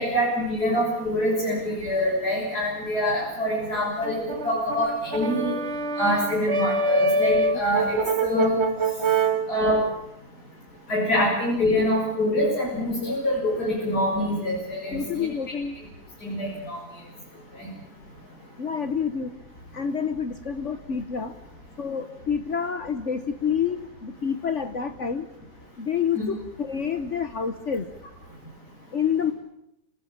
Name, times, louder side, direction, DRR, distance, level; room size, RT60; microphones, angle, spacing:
voice 1, 0.0-5.5 6.0-8.6 9.5-9.9 10.9-15.3 16.2-16.8 17.6-17.7 26.1-26.2, left 1 dB, 85° left, -4 dB, 7.5 m, -25 dB
Brass instrument, 4.0-9.5, right 3 dB, 45° right, 1.6 m, -25 dB
voice 2, 14.9-15.8 18.6-19.3 19.7-21.3 21.8-25.3 25.8-27.9 28.9-29.3, left 7 dB, 50° left, 10 dB, 1.4 m, -28 dB
28.5 x 18.5 x 8.7 m, 0.84 s
omnidirectional pair, 1.6 m